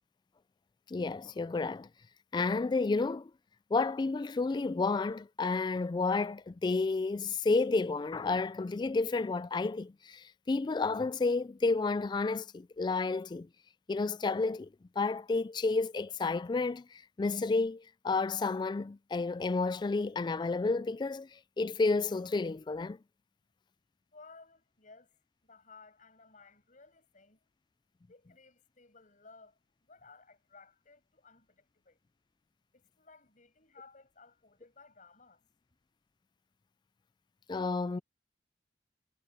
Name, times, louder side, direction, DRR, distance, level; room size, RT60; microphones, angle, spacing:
voice 1, 0.9-1.9 2.3-3.3 3.7-13.5 13.9-14.7 15.0-23.0 37.5-38.0, left 3 dB, 25° left, 0.3 m, -31 dB
voice 2, 24.1-27.4 28.1-32.0 32.7-35.5, left 4 dB, 45° left, 7.4 m, -58 dB
head